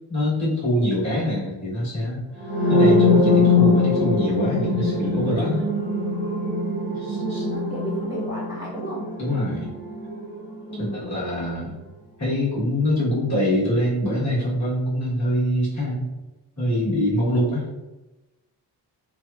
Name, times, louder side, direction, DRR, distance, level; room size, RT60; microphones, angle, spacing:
voice 1, 0.1-2.2 2.7-5.7 7.0-7.4 9.2-9.7 10.8-11.8 12.2-16.1 16.6-17.6, equal, 40° left, -8 dB, 1.2 m, -24 dB
sound 1, 2.4-10.2, left 3 dB, 25° right, 0.6 m, -22 dB
voice 2, 7.2-9.1 10.7-11.1, right 1 dB, 10° right, -8 dB, 0.9 m, -32 dB
3.1 x 2.1 x 2.2 m, 1.1 s
wide cardioid pair, 145°, 43 cm